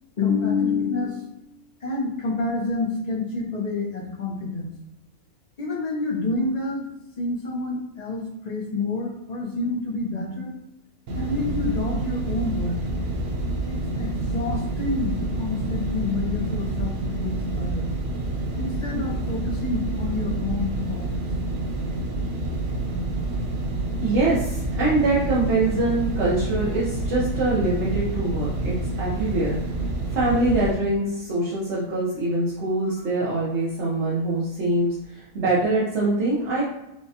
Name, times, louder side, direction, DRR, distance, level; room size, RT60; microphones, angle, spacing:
voice 1, 0.2-1.3 1.8-4.7 5.6-6.9 7.2-10.5 11.1-12.8 13.7-17.9 18.6-21.3, left 3 dB, 35° left, 0 dB, 0.7 m, -28 dB
sound 1, 11.1-30.7, right 2 dB, 85° right, 1.3 m, -28 dB
voice 2, 24.0-29.5 30.1-36.6, right 2 dB, 55° right, -8 dB, 1.2 m, -24 dB
6.3 x 2.3 x 2.8 m, 0.89 s
omnidirectional pair, 1.5 m